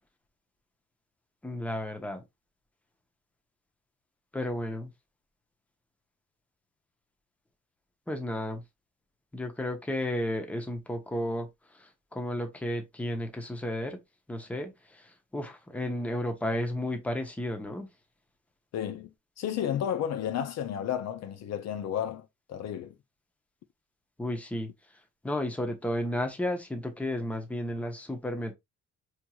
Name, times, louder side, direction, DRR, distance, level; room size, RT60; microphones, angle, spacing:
voice 1, 1.4-2.2 4.3-4.9 8.1-8.6 9.3-11.5 11.8-14.0 14.3-17.9 24.2-24.7 25.2-28.5, left 1 dB, 5° left, 0.7 m, -33 dB
voice 2, 18.7-19.1 19.4-23.0, left 9 dB, 60° left, 0.5 m, -32 dB
4.4 x 2.9 x 2.2 m
cardioid pair, 145°, 31 cm